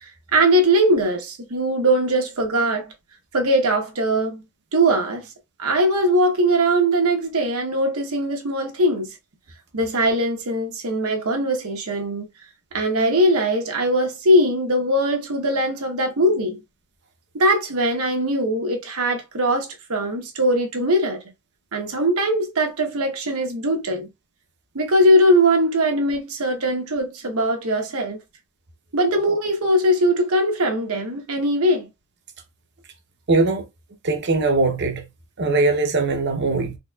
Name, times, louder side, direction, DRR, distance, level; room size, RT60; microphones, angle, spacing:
voice 1, 0.0-2.9 3.3-4.4 4.7-5.3 5.6-9.1 9.7-12.2 12.7-16.6 17.3-21.2 21.7-24.1 24.7-28.2 28.9-31.9, right 1 dB, 75° right, 1.0 m, -20 dB
voice 2, 33.3-33.6 34.0-35.0 35.4-36.8, right 3 dB, 50° right, 0.8 m, -20 dB
4.1 x 2.9 x 2.3 m
head